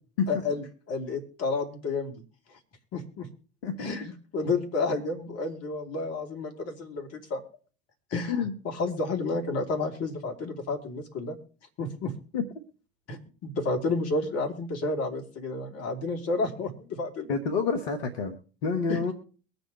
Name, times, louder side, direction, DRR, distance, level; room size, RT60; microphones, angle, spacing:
voice 1, 0.3-2.2 2.5-2.6 2.9-3.3 3.8-7.4 8.1-11.4 11.8-12.1 13.1-17.3 18.9-19.0, left 3 dB, 50° left, 4 dB, 3.2 m, -31 dB
voice 2, 17.3-19.1, left 5 dB, 75° left, 5 dB, 1.7 m, -28 dB
23.0 x 7.8 x 3.2 m, 0.40 s
hypercardioid pair, 70°, 32 cm